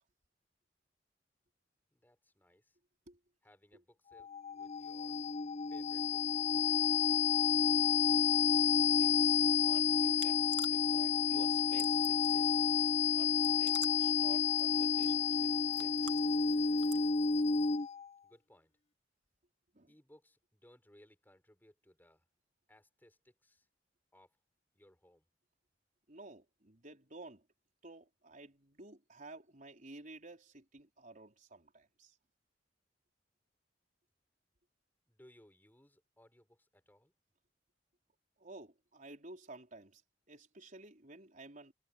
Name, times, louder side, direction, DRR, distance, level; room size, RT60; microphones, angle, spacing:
voice 1, 1.9-2.8 3.4-4.3 4.5-5.2 5.7-6.8 7.0-7.2 18.2-18.7 19.9-22.2 22.7-23.7 24.1-24.4 24.7-25.2 35.1-37.1, left 1 dB, 10° left, 5.0 m, -64 dB
sound 1, 4.2-18.1, left 6 dB, 35° left, 0.6 m, -30 dB
voice 2, 8.9-9.4 9.6-12.6 13.2-16.2 19.7-19.9 26.1-27.4 27.8-32.2 38.4-40.0 40.3-41.7, right 2 dB, 45° right, 4.5 m, -53 dB
sound 2, 9.9-17.1, right 11 dB, 70° right, 1.8 m, -52 dB
head